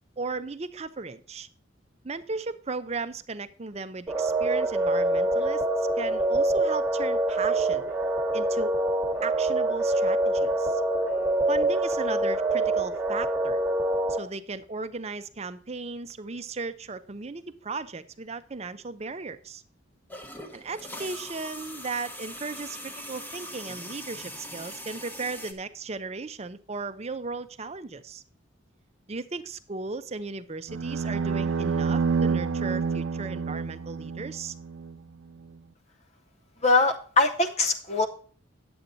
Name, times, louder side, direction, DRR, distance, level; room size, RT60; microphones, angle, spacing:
voice 1, 0.2-1.5 2.0-5.7 6.0-7.9 8.3-8.8 9.2-10.8 11.5-13.6 14.1-19.6 20.5-28.2 29.1-34.5, right 4 dB, 35° right, 12 dB, 0.6 m, -36 dB
sound 1, 4.1-14.2, right 2 dB, 15° right, 1.4 m, -25 dB
sound 2, 20.1-25.5, equal, 10° left, 1.0 m, -41 dB
sound 3, 30.7-35.0, right 5 dB, 85° right, 0.5 m, -28 dB
voice 2, 36.6-38.1, left 3 dB, 35° left, 5 dB, 0.7 m, -22 dB
9.7 x 7.9 x 3.9 m, 0.44 s
head